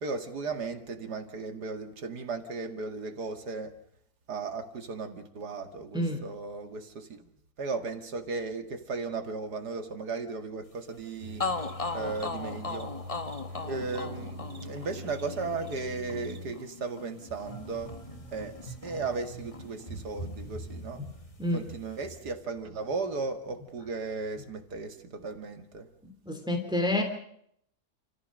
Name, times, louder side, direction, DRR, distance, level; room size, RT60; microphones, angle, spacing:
voice 1, 0.0-3.7 4.3-7.2 7.6-11.5 11.9-13.0 13.6-17.9 18.3-21.0 21.5-25.9, right 4 dB, 80° right, 2.6 m, -36 dB
voice 2, 5.9-6.3 21.4-21.7 26.0-27.0, left 1 dB, 5° right, 3.0 m, -29 dB
sound 1, 11.0-11.1 11.4-19.3 19.5-20.7, left 3 dB, 25° left, 1.1 m, -38 dB
sound 2, 11.2-16.5, left 1 dB, 40° right, 1.7 m, -43 dB
sound 3, 17.3-24.8, right 1 dB, 45° left, 7.2 m, -45 dB
30.0 x 14.5 x 6.4 m
omnidirectional pair, 1.7 m